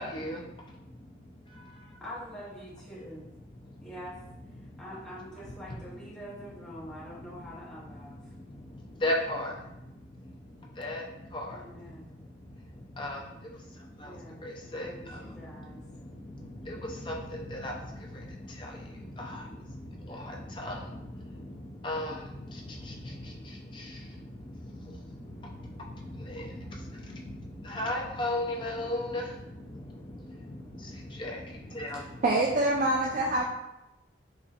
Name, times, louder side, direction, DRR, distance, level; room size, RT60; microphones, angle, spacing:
voice 1, 0.0-2.0 3.6-3.9 4.6-4.8 5.4-5.5 7.3-7.4 8.0-32.2, left 1 dB, 25° left, 0.5 m, -38 dB
voice 2, 2.0-3.2 3.8-4.2 4.8-8.3 11.5-12.1 14.0-15.8, equal, 5° left, 1.0 m, -45 dB
voice 3, 32.2-33.4, right 2 dB, 45° right, 0.3 m, -25 dB
4.1 x 2.9 x 2.5 m
head